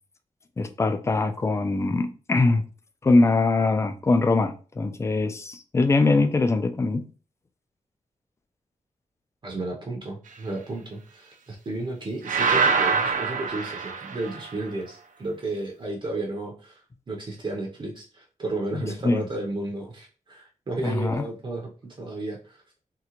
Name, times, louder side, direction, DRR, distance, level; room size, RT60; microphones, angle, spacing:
voice 1, 0.6-2.6 3.0-7.1 18.7-19.2 20.8-21.2, left 3 dB, 20° left, 0.3 m, -22 dB
voice 2, 9.4-22.6, right 2 dB, 35° right, 0.6 m, -33 dB
sound 1, 12.3-14.5, right 5 dB, 75° right, 0.5 m, -24 dB
3.6 x 2.1 x 2.9 m
wide cardioid pair, 140°, 13 cm